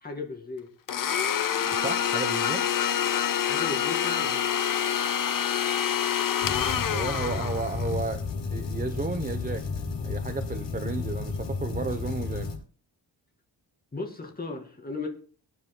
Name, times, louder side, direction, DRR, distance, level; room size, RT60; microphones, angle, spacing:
voice 1, 0.0-0.7 3.4-4.4 13.9-15.1, left 3 dB, 20° left, 2 dB, 2.3 m, -35 dB
Domestic sounds home sounds, 0.9-7.9, left 9 dB, 50° left, 0.8 m, -27 dB
voice 2, 1.7-2.7 6.7-8.2 8.5-9.6 10.0-12.5, right 4 dB, 20° right, 7 dB, 0.8 m, -33 dB
sound 1, 6.4-12.6, left 4 dB, 80° left, 6.2 m, -32 dB
24.5 x 9.5 x 2.2 m, 0.42 s
wide cardioid pair, 175°, 42 cm